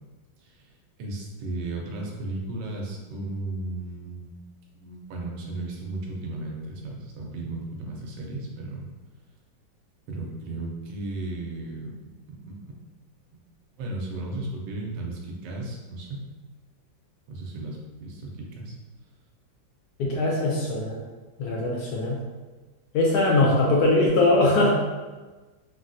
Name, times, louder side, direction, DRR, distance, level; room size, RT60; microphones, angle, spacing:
voice 1, 0.4-0.7 1.0-4.3 4.7-8.9 10.1-11.9 12.3-12.6 13.8-16.2 17.3-18.7 23.2-23.4, right 2 dB, 80° right, -1 dB, 1.2 m, -35 dB
voice 2, 20.0-21.0 21.4-22.2 22.9-24.7, left 2 dB, 70° left, -3 dB, 0.9 m, -21 dB
3.5 x 2.3 x 2.5 m, 1.3 s
omnidirectional pair, 2.0 m